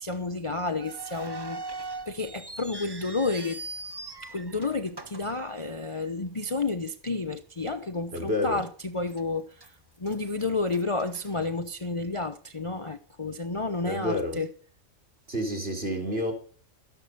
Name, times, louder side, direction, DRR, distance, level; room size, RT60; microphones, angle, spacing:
voice 1, 0.0-3.6 4.3-9.7 10.0-14.5, left 3 dB, 30° left, 0.7 m, -31 dB
sound 1, 0.8-6.1 6.4-6.5 7.2-7.5 7.9-8.0 8.6-9.2 9.6-12.0, right 2 dB, 20° right, 1.1 m, -41 dB
voice 2, 8.1-8.6 13.8-14.4 15.3-16.3, left 1 dB, 45° right, 4.2 m, -29 dB
13.5 x 11.5 x 6.7 m
omnidirectional pair, 1.4 m